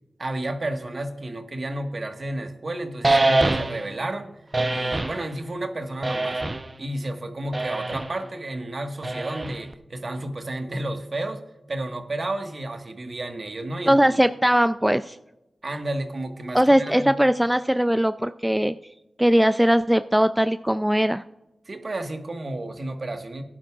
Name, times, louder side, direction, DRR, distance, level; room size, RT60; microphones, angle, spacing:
voice 1, 0.2-4.3 4.7-6.4 6.8-11.4 11.7-14.2 15.6-17.1 21.6-23.4, right 1 dB, 50° right, 5 dB, 1.4 m, -31 dB
sound 1, 3.0-3.9 4.5-5.2 6.0-6.8 7.5-8.1 9.0-9.7, right 2 dB, 35° right, 0.7 m, -24 dB
voice 2, 13.9-15.2 16.5-18.7 19.2-21.2, equal, 5° right, 10 dB, 0.3 m, -20 dB
17.0 x 10.5 x 2.4 m, 0.93 s
cardioid pair, 55°, 0 cm